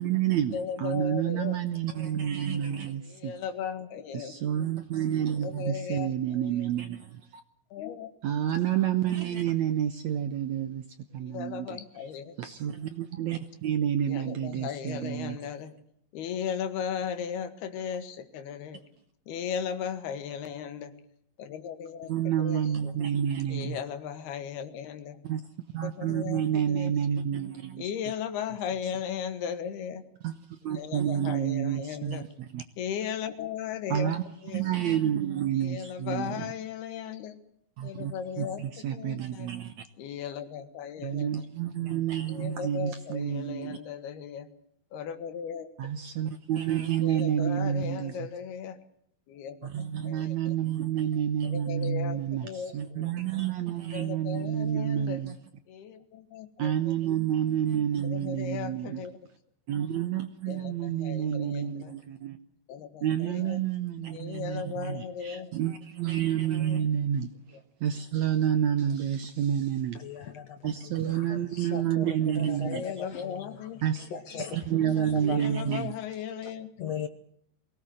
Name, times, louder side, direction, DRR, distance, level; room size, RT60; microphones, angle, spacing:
voice 1, 0.0-3.3 4.1-7.4 8.2-10.8 11.1-11.8 12.4-15.4 22.1-23.8 25.2-25.4 25.7-27.9 30.2-32.6 33.9-34.2 34.5-36.5 37.8-39.8 41.0-43.8 45.8-48.3 49.6-55.4 56.6-59.0 59.7-62.4 63.0-70.0 70.6-72.8 73.8-74.1 74.5-75.9 76.4-76.5, right 10 dB, 70° right, 1.8 m, -29 dB
voice 2, 0.5-1.6 1.9-2.1 3.1-4.3 5.4-6.7 7.7-8.1 11.2-12.4 14.1-15.7 16.1-18.8 19.3-20.9 21.4-22.1 22.4-22.9 23.5-25.2 25.8-26.9 27.8-30.0 30.7-32.3 32.8-34.1 34.4-35.0 35.6-37.4 37.8-38.6 38.9-39.5 40.0-41.3 42.3-44.5 44.9-45.7 47.0-48.8 49.3-49.7 50.0-50.6 51.4-53.1 53.9-55.2 55.7-56.9 58.0-59.1 60.5-61.9 62.7-63.6 64.1-65.5 66.6-66.8 72.6-73.8 74.4-74.6 75.2-76.9, left 8 dB, 85° left, 3.7 m, -37 dB
voice 3, 70.0-70.7 71.1-73.4 74.1-74.6 74.8-75.4 76.8-77.1, left 7 dB, 65° left, 1.6 m, -38 dB
23.0 x 18.0 x 7.8 m
omnidirectional pair, 4.4 m